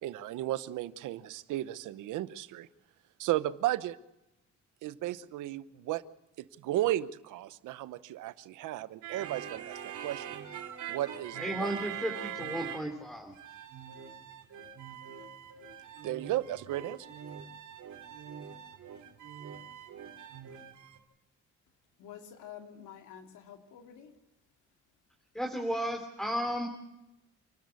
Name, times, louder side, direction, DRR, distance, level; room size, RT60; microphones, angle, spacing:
voice 1, 0.0-2.7 3.2-4.0 4.8-6.0 6.4-10.4 10.9-11.7 16.0-17.1, right 14 dB, 90° right, 15 dB, 1.0 m, -34 dB
sound 1, 9.0-13.1 13.3-21.0, right 9 dB, 70° right, 3.2 m, -43 dB
voice 2, 11.4-13.3 25.3-26.7, equal, ahead, 3 dB, 3.1 m, -34 dB
voice 3, 22.0-24.1, left 9 dB, 85° left, 5 dB, 2.8 m, -49 dB
28.5 x 13.0 x 8.3 m, 0.92 s
cardioid pair, 90°, 30 cm